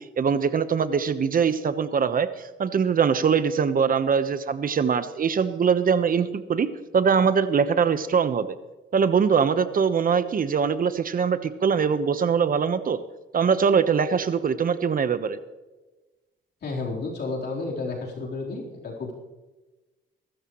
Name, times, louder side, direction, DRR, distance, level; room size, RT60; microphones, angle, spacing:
voice 1, 0.2-6.7 6.9-8.5 8.9-13.0 13.3-15.4, right 6 dB, 45° right, 11 dB, 1.1 m, -22 dB
voice 2, 16.6-19.1, left 3 dB, 55° left, -3 dB, 4.0 m, -31 dB
22.5 x 13.5 x 3.1 m, 1.1 s
cardioid pair, 90°, 20 cm